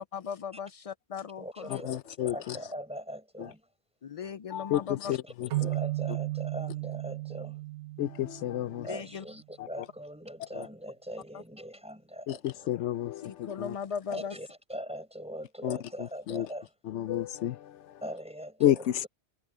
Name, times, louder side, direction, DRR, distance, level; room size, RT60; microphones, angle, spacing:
voice 1, 0.1-1.8 4.0-5.2 8.8-9.2 13.2-14.3, left 7 dB, 65° left, 0.3 m, -38 dB
voice 2, 1.4-3.7 5.1-7.6 8.8-12.7 14.1-16.7 18.0-19.1, equal, 5° right, 6.9 m, -41 dB
voice 3, 1.9-2.3 4.5-4.8 5.1-5.2 8.0-8.8 12.7-13.3 13.6-13.7 15.6-15.8 16.3-16.4 16.9-17.6 18.6-18.7, left 12 dB, 80° left, 0.9 m, -28 dB
sound 1, 5.5-9.0, right 18 dB, 85° right, 1.1 m, -34 dB
omnidirectional pair, 1.2 m